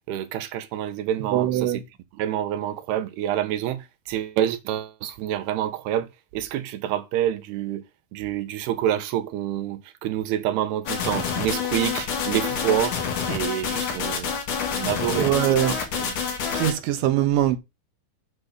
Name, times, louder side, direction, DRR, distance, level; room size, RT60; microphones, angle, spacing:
voice 1, 0.1-1.8 2.1-6.1 6.3-7.8 8.1-13.0 13.3-14.3 14.7-16.2, right 11 dB, 90° right, 3.0 m, -27 dB
voice 2, 1.2-1.8 15.2-15.8 16.5-17.6, right 12 dB, 70° right, 2.3 m, -22 dB
sound 1, 10.9-16.7, left 6 dB, 55° left, 3.1 m, -27 dB
8.8 x 4.2 x 6.6 m
omnidirectional pair, 4.5 m